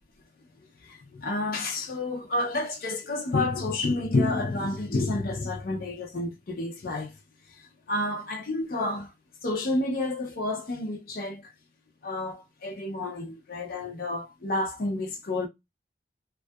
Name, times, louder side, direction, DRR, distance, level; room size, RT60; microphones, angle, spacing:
voice 1, 0.8-7.2 7.5-9.1 9.4-11.5 12.0-15.5, left 2 dB, 55° left, 0.5 m, -30 dB
2.6 x 2.3 x 2.2 m
head